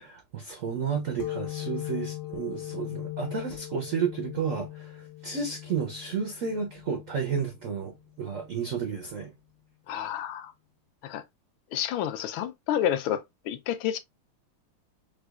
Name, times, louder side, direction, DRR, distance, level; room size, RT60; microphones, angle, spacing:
voice 1, 0.0-9.3, right 6 dB, 85° right, 0.7 m, -32 dB
sound 1, 1.2-8.5, left 15 dB, 60° left, 1.2 m, -39 dB
voice 2, 9.9-10.5 11.0-11.2 11.7-14.0, left 10 dB, 80° left, 1.3 m, -30 dB
4.9 x 2.3 x 2.3 m
omnidirectional pair, 2.3 m